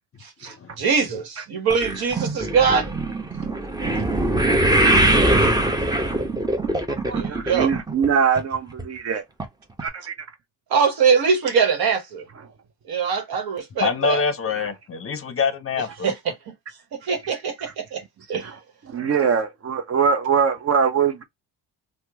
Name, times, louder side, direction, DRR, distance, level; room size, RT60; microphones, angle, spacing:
voice 1, 0.4-2.9 7.1-7.7 10.7-12.2 12.9-14.2 16.0-16.4 16.9-18.0 18.3-18.5, right 6 dB, 65° right, 1.1 m, -22 dB
sound 1, 1.7-8.1 8.4-8.8 9.4-9.5 9.8-9.9, right 1 dB, 10° right, 0.7 m, -21 dB
voice 2, 7.0-9.2 9.8-10.1 14.6-14.7 18.4-18.6 18.9-21.2, right 6 dB, 40° right, 0.7 m, -22 dB
voice 3, 13.8-16.1, left 5 dB, 35° left, 0.6 m, -25 dB
2.9 x 2.1 x 3.5 m
cardioid pair, 80°, 40 cm